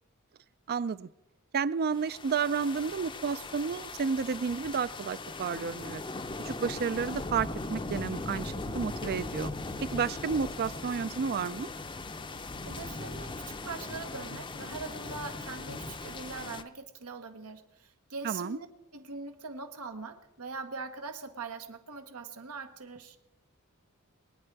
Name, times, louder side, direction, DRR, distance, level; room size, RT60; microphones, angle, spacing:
voice 1, 0.7-1.1 1.5-6.0 6.4-9.5 9.9-11.7 18.2-18.6, right 6 dB, 45° right, 0.4 m, -31 dB
sound 1, 1.9-16.6, left 3 dB, 20° left, 0.6 m, -39 dB
voice 2, 12.6-18.7 18.9-23.2, right 4 dB, 90° right, 1.2 m, -42 dB
23.0 x 9.1 x 4.6 m
head